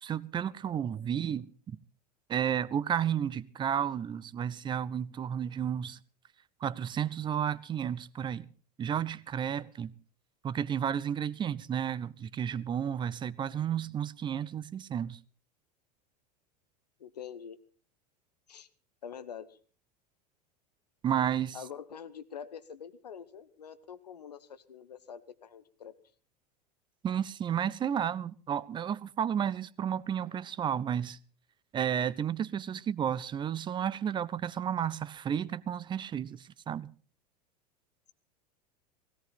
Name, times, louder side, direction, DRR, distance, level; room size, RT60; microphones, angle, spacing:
voice 1, 0.0-1.5 2.3-6.0 6.6-8.5 8.8-9.9 10.4-15.2 21.0-21.6 27.0-31.2 31.7-36.9, right 9 dB, 20° right, 0.6 m, -32 dB
voice 2, 17.0-17.6 18.5-18.7 19.0-19.6 21.5-25.9, left 8 dB, 75° left, 1.0 m, -45 dB
17.0 x 17.0 x 4.2 m
figure-of-eight pair, 80°, 21 cm